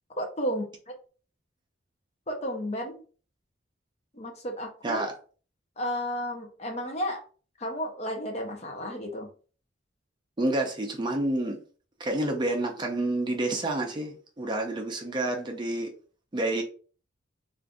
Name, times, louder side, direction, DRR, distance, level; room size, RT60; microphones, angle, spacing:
voice 1, 0.2-0.7 2.3-3.0 4.1-5.0 5.8-7.2 7.6-9.3, equal, 35° left, 3 dB, 0.7 m, -32 dB
voice 2, 10.4-11.6 12.0-15.9 16.3-16.6, right 2 dB, 25° right, 2 dB, 0.5 m, -29 dB
2.5 x 2.4 x 3.5 m, 0.39 s
head